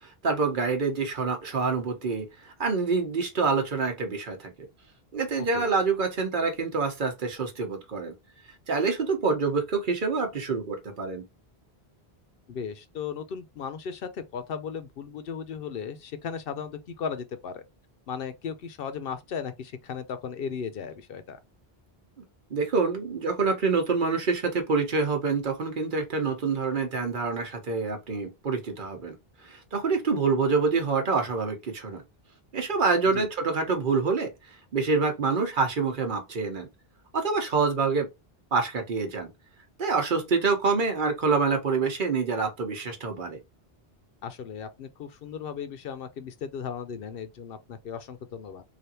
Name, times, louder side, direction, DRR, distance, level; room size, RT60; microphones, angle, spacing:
voice 1, 0.0-4.5 5.1-8.1 8.7-11.2 22.5-29.2 29.4-32.0 32.5-36.7 37.1-38.1 38.5-39.3 39.8-43.4, right 4 dB, 55° right, 1.0 m, -26 dB
voice 2, 5.4-5.7 12.5-17.6 18.1-21.4 33.1-33.3 44.2-48.6, left 6 dB, 70° left, 0.8 m, -36 dB
3.3 x 2.5 x 2.7 m
omnidirectional pair, 1.0 m